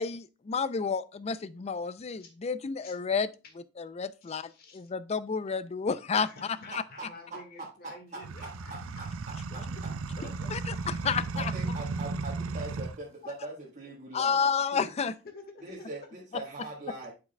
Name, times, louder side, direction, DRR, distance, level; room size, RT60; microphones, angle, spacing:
voice 1, 0.0-3.3 3.8-6.3 6.7-6.8 10.5-11.5 14.1-15.1, left 5 dB, 30° left, 0.4 m, -30 dB
voice 2, 4.2-4.8 6.2-9.0 9.5-9.8 10.2-10.5 14.2-14.3 15.2-15.9, left 3 dB, 45° left, 1.6 m, -49 dB
voice 3, 6.7-9.9 11.3-14.4 14.7-14.9 15.6-17.1, right 2 dB, 35° right, 1.3 m, -42 dB
sound 1, 8.2-13.0, right 4 dB, 70° right, 0.5 m, -35 dB
12.0 x 4.7 x 2.2 m
head